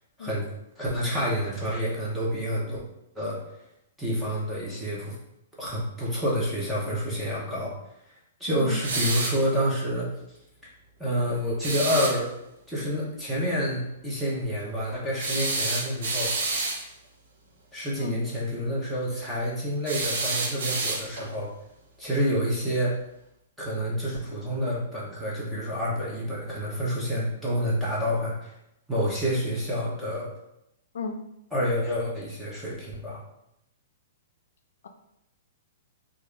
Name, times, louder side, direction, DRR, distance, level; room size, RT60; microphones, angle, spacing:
voice 1, 0.2-2.8 3.2-3.4 4.0-5.1 5.6-7.7 8.4-10.1 10.6-10.7 11.0-12.3 12.7-16.3 17.7-21.5 22.0-23.0 23.6-28.5 28.9-30.3 31.5-33.2, equal, ahead, -7 dB, 0.8 m, -28 dB
voice 2, 8.5-8.8 18.0-18.2 30.9-31.2 34.8-34.9, left 3 dB, 80° left, 5 dB, 0.4 m, -34 dB
sound 1, 8.8-9.4 11.6-12.2 15.2-16.8 19.9-21.3, right 3 dB, 65° right, 0.7 m, -28 dB
3.4 x 2.4 x 3.3 m, 0.81 s
hypercardioid pair, 165°, 0 cm